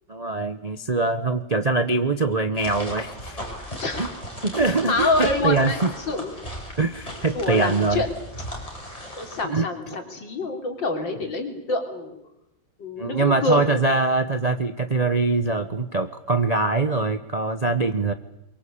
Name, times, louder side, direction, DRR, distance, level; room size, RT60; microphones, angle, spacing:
voice 1, 0.1-3.4 4.0-4.1 4.4-5.9 6.8-8.0 9.4-9.7 13.0-18.1, right 3 dB, 35° right, 10 dB, 0.6 m, -23 dB
sound 1, 2.6-9.4, equal, 15° left, 5.8 m, -36 dB
voice 2, 4.8-6.3 7.3-8.1 9.2-12.2 12.8-13.6, left 2 dB, 70° left, 4 dB, 3.9 m, -26 dB
23.0 x 23.0 x 8.6 m, 0.85 s
omnidirectional pair, 2.1 m